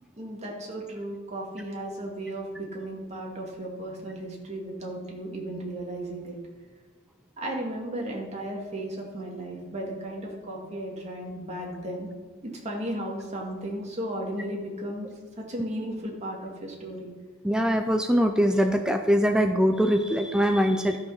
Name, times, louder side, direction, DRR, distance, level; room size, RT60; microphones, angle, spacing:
voice 1, 0.2-6.4 7.4-12.1 12.4-15.1 15.4-17.1, right 1 dB, 30° right, -2 dB, 2.1 m, -35 dB
voice 2, 17.4-21.1, equal, 5° right, 5 dB, 0.4 m, -23 dB
13.0 x 6.3 x 5.7 m, 1.3 s
head